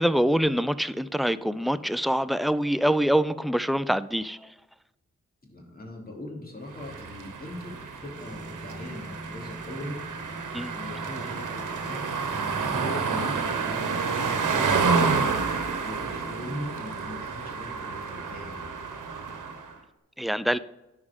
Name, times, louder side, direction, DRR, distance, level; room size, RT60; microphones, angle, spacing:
voice 1, 0.0-4.4 10.5-10.7 20.2-20.6, equal, ahead, 15 dB, 0.4 m, -25 dB
voice 2, 5.4-10.0 10.7-12.1 12.7-18.7, left 1 dB, 30° left, -1 dB, 2.9 m, -40 dB
sound 1, 6.7-19.7, right 5 dB, 85° right, 1.0 m, -29 dB
sound 2, 8.1-15.6, right 2 dB, 35° right, 1.5 m, -43 dB
11.0 x 4.9 x 5.1 m, 1.0 s
cardioid pair, 50°, 30 cm